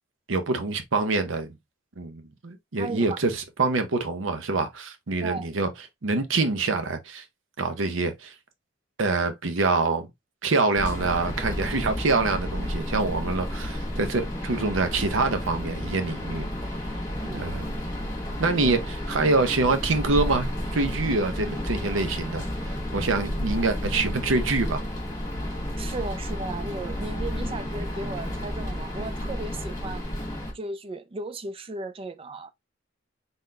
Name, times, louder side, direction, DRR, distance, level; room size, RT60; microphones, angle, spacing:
voice 1, 0.3-1.5 2.0-5.7 6.0-7.2 7.6-8.3 9.0-10.1 10.4-16.5 17.3-17.8 18.4-22.5 22.9-24.8, right 3 dB, 75° right, 0.7 m, -25 dB
voice 2, 2.8-3.2 5.2-5.5 17.2-17.4 25.8-30.0 30.5-32.5, right 3 dB, 30° right, 0.4 m, -35 dB
sound 1, 10.8-30.5, equal, 20° left, 1.7 m, -31 dB
4.0 x 3.8 x 2.2 m
head